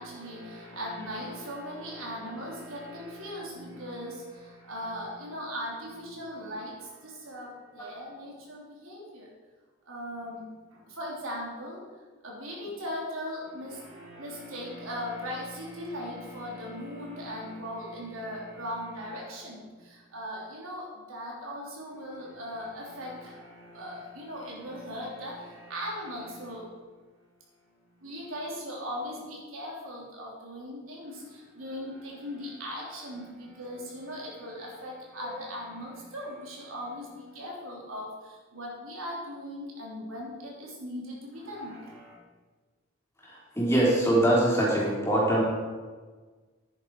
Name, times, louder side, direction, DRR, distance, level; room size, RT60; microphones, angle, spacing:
voice 1, 0.0-9.3 9.9-10.4 10.7-11.8 12.2-26.9 28.0-42.1, equal, 85° right, -3 dB, 3.4 m, -39 dB
voice 2, 43.3-45.4, right 1 dB, 15° left, -5 dB, 3.6 m, -23 dB
11.0 x 9.7 x 4.8 m, 1.4 s
head